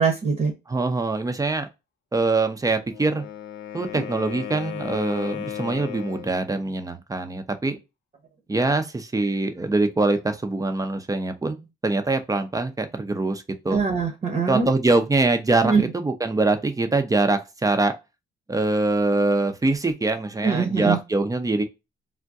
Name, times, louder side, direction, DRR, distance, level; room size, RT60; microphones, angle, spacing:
voice 1, 0.0-0.5 3.9-4.0 13.7-14.7 15.6-15.8 20.4-21.0, right 5 dB, 40° right, 1.0 m, -22 dB
voice 2, 0.7-1.7 2.1-3.2 3.7-7.8 8.5-13.8 14.5-18.0 18.5-21.6, right 2 dB, 15° right, 0.6 m, -23 dB
Wind instrument woodwind instrument, 2.8-6.4, left 10 dB, 70° left, 0.7 m, -35 dB
3.5 x 2.2 x 2.5 m
cardioid pair, 90°, 20 cm